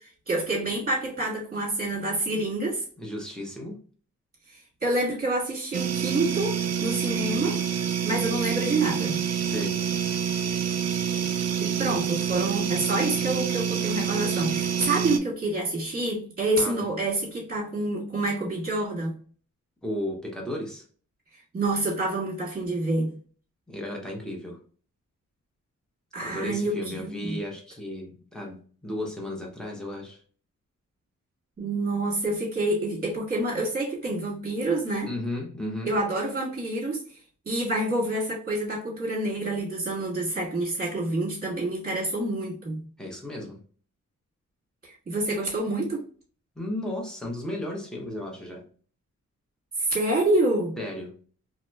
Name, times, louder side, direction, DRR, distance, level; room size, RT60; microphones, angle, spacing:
voice 1, 0.3-2.8 4.5-7.6 8.0-9.2 11.6-19.1 21.5-23.1 26.1-27.4 31.6-35.1 35.9-37.0 37.4-42.8 44.8-46.0 49.8-50.7, right 2 dB, 30° right, -5 dB, 1.5 m, -27 dB
voice 2, 3.0-3.8 9.4-9.8 16.6-16.8 19.8-20.8 23.7-24.6 26.2-30.2 35.1-35.9 43.0-43.6 46.6-48.6 50.8-51.2, left 1 dB, ahead, -1 dB, 0.8 m, -34 dB
sound 1, 5.7-15.2, right 8 dB, 55° right, 0.4 m, -27 dB
2.9 x 2.9 x 2.2 m, 0.43 s
wide cardioid pair, 130°, 30 cm